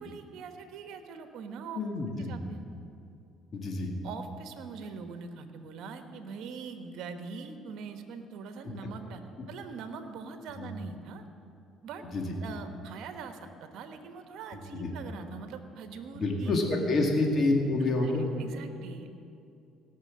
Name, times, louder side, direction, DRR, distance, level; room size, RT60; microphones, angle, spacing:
voice 1, 0.0-1.8 2.2-2.6 4.0-9.2 9.5-11.2 11.8-12.0 12.4-16.7 17.8-19.1, right 5 dB, 70° right, 7 dB, 1.1 m, -43 dB
voice 2, 1.7-2.3 3.5-3.9 10.5-10.7 12.1-12.3 14.5-14.9 16.1-18.3, left 2 dB, 40° left, 1 dB, 2.1 m, -28 dB
17.0 x 6.3 x 7.6 m, 2.6 s
cardioid pair, 95°, 0 cm